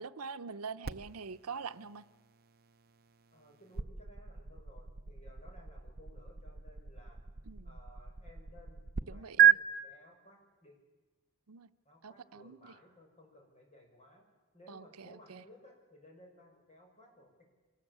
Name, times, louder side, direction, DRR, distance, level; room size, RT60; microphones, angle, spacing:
voice 1, 0.0-2.0 7.4-7.8 9.1-9.6 11.5-11.7 12.0-12.7 14.7-15.4, right 5 dB, 85° right, 12 dB, 0.7 m, -44 dB
sound 1, 0.8-9.0 9.4-9.5, right 9 dB, 45° right, 0.7 m, -33 dB
voice 2, 3.3-7.2 7.6-10.8 11.8-14.2 14.5-17.4, left 1 dB, 30° left, 1 dB, 6.5 m, -59 dB
25.5 x 19.5 x 8.8 m, 1.2 s
head